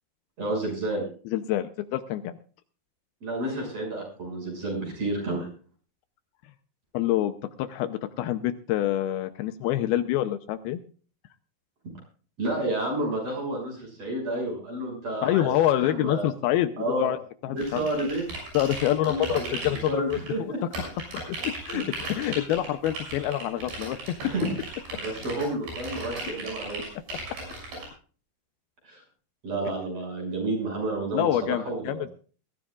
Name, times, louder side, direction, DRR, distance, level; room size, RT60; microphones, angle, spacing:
voice 1, 0.4-1.0 3.2-5.5 12.4-15.5 15.7-16.3 16.8-17.1 17.5-18.3 19.0-20.6 24.2-24.5 25.0-26.8 28.8-29.0 29.4-32.0, right 1 dB, 40° right, 0 dB, 7.4 m, -30 dB
voice 2, 1.3-2.4 6.9-7.3 7.6-10.8 15.2-17.2 17.4-17.8 18.5-20.5 20.8-20.9 21.1-24.0 31.1-32.1, left 13 dB, 80° left, 10 dB, 2.5 m, -26 dB
sound 1, 17.6-20.3 20.7-27.9, right 2 dB, 75° right, 8.4 m, -37 dB
21.5 x 14.5 x 2.4 m, 0.39 s
omnidirectional pair, 4.6 m